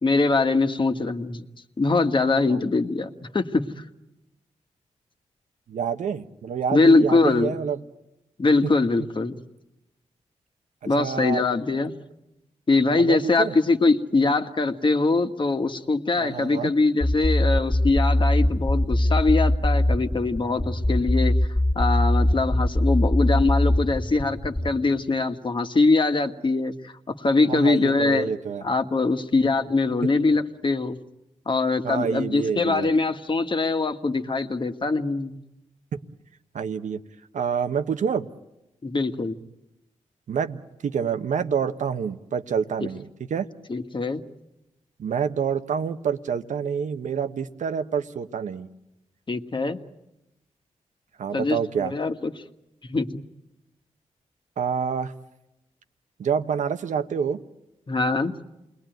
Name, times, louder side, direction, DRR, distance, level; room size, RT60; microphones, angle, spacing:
voice 1, 0.0-1.4 1.8-3.8 6.7-7.6 8.4-9.4 10.9-12.0 12.7-21.4 21.8-28.3 28.6-31.0 31.5-35.4 38.8-39.4 43.7-44.2 49.3-49.8 51.3-52.3 52.8-53.2 57.9-58.3, left 3 dB, 40° left, 7 dB, 1.7 m, -22 dB
voice 2, 5.7-7.8 11.0-11.4 13.0-13.6 16.2-16.7 27.5-28.6 31.8-32.9 35.9-36.0 36.5-37.0 37.3-38.3 40.3-43.5 45.0-48.7 51.2-51.9 54.6-55.1 56.2-57.4, right 7 dB, 80° right, 9 dB, 1.2 m, -27 dB
sound 1, 17.0-24.7, left 1 dB, 15° left, 1.7 m, -21 dB
28.5 x 21.0 x 9.2 m, 0.95 s
cardioid pair, 60°, 13 cm